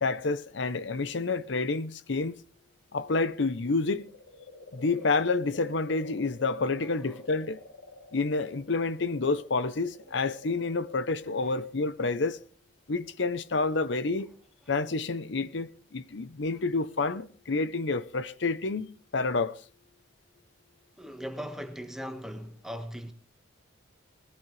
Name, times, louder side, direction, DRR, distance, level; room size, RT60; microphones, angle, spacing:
voice 1, 0.0-2.4 2.9-4.0 4.7-7.6 8.1-12.4 12.9-14.3 14.7-19.5, left 3 dB, 65° left, 0.7 m, -29 dB
sound 1, 3.9-12.5, left 2 dB, 80° left, 3.7 m, -49 dB
voice 2, 21.0-23.1, equal, ahead, 1.5 m, -39 dB
20.5 x 16.0 x 3.3 m
head